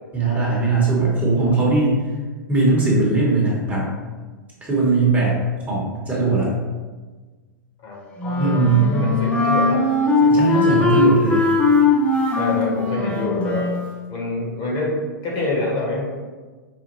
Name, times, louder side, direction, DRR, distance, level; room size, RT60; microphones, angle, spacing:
voice 1, 0.1-2.0 2.5-3.9 4.6-5.3 5.7-6.5 8.4-8.9 10.3-11.4, right 3 dB, 15° right, -5 dB, 1.1 m, -19 dB
voice 2, 7.8-10.8 12.3-13.7 14.1-16.0, left 2 dB, 45° left, -2 dB, 1.2 m, -27 dB
Wind instrument woodwind instrument, 8.2-13.8, left 3 dB, 10° left, 0.8 m, -19 dB
5.0 x 2.2 x 3.0 m, 1.3 s
hypercardioid pair, 110°, 11 cm